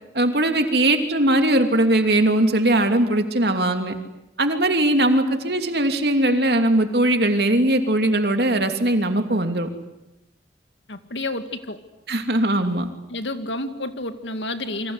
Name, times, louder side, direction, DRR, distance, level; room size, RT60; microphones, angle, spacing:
voice 1, 0.1-3.9 4.4-9.7 12.1-12.9, right 1 dB, 60° right, 6 dB, 2.9 m, -20 dB
voice 2, 10.9-11.8 13.1-14.9, left 2 dB, 85° left, 8 dB, 2.2 m, -30 dB
29.0 x 24.5 x 8.1 m, 0.91 s
head